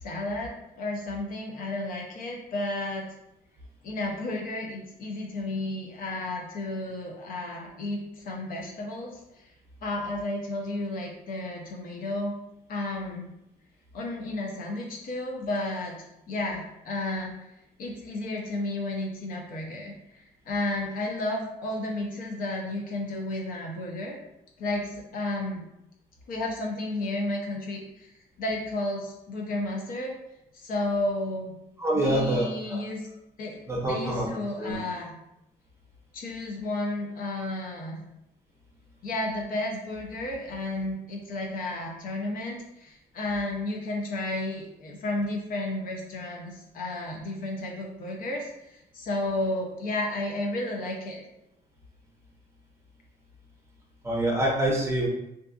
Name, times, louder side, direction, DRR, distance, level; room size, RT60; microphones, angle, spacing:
voice 1, 0.0-3.1 3.8-9.2 9.8-12.3 12.7-13.3 13.9-17.4 17.8-24.2 24.6-25.6 26.3-28.1 28.4-30.1 30.5-31.6 31.9-33.1 33.4-33.6 33.9-35.1 36.1-38.0 39.0-48.5 48.9-51.2, left 2 dB, 55° left, -1 dB, 0.6 m, -32 dB
voice 2, 31.8-32.8 33.7-34.3 34.6-34.8 54.0-55.1, right 1 dB, 15° right, -3 dB, 0.7 m, -26 dB
2.6 x 2.4 x 2.4 m, 0.85 s
cardioid pair, 110°, 17 cm